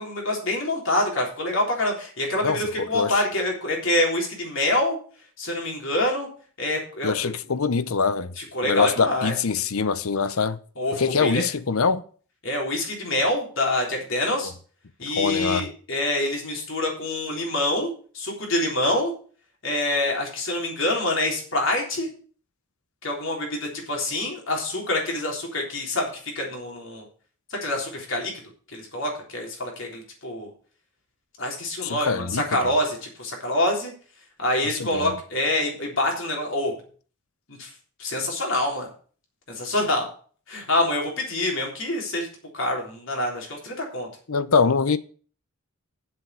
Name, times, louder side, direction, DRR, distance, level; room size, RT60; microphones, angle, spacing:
voice 1, 0.0-5.0 5.4-6.3 6.6-7.1 8.4-9.3 10.8-11.4 12.4-14.5 15.0-19.1 19.6-22.1 23.0-26.1 26.4-27.1 27.5-28.3 28.7-30.5 31.4-33.9 34.4-36.7 37.5-37.7 38.0-38.9 39.5-40.1 40.5-42.3 42.5-44.1, left 1 dB, 60° left, 3.6 m, -26 dB
voice 2, 2.4-3.1 7.0-8.3 8.6-10.6 10.9-12.0 14.4-14.5 15.2-15.7 31.8-32.7 34.6-35.1 44.3-45.0, left 5 dB, 75° left, 0.7 m, -24 dB
7.5 x 7.0 x 8.0 m
head